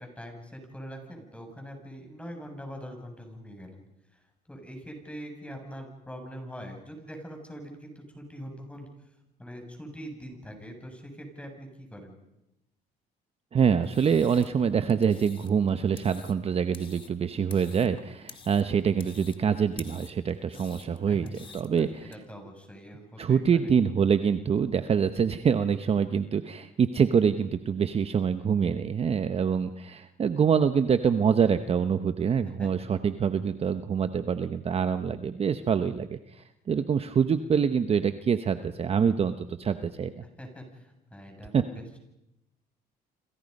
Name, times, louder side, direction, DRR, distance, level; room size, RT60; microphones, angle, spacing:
voice 1, 0.0-3.8 4.1-8.9 9.4-12.1 21.1-23.7 32.6-32.7 40.4-42.0, equal, 5° left, 3 dB, 7.3 m, -43 dB
voice 2, 13.5-22.1 23.2-40.2 41.5-41.6, right 7 dB, 35° right, 10 dB, 1.0 m, -25 dB
sound 1, 13.8-22.2, left 5 dB, 30° left, 2.1 m, -50 dB
28.5 x 27.0 x 5.4 m, 0.90 s
cardioid pair, 110°, 17 cm